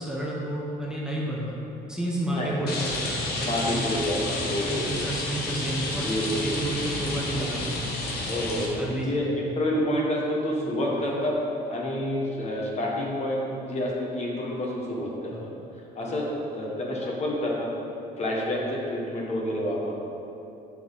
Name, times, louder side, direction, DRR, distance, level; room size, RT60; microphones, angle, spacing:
voice 1, 0.0-1.5 1.9-8.0 8.8-9.1 15.3-15.4, right 1 dB, 5° right, -5 dB, 1.0 m, -31 dB
voice 2, 2.3-2.7 3.4-5.1 5.9-6.6 8.2-11.4 11.7-15.5 15.9-17.7 18.2-19.9, left 1 dB, 40° left, -3 dB, 1.4 m, -28 dB
Rain, 2.7-8.7, left 2 dB, 70° left, 1.3 m, -31 dB
7.0 x 6.0 x 4.0 m, 2.8 s
cardioid pair, 110°, 17 cm